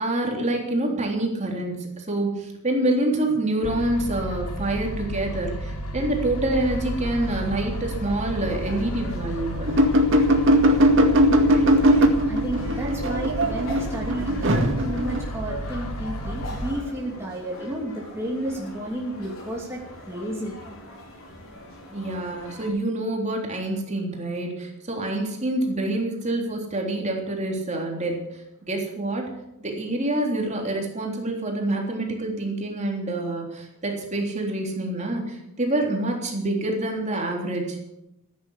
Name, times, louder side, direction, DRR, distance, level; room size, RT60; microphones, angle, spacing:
voice 1, 0.0-9.8 21.9-29.3 29.6-37.8, right 1 dB, 30° right, 0 dB, 3.4 m, -27 dB
sound 1, 3.6-16.7, equal, 90° left, 1.5 m, -32 dB
sound 2, 6.6-22.7, equal, 60° left, 5.5 m, -41 dB
sound 3, 9.7-15.2, equal, 60° right, 2.1 m, -19 dB
voice 2, 12.3-20.6, right 1 dB, 10° right, -4 dB, 2.9 m, -31 dB
15.0 x 10.5 x 8.3 m, 0.85 s
head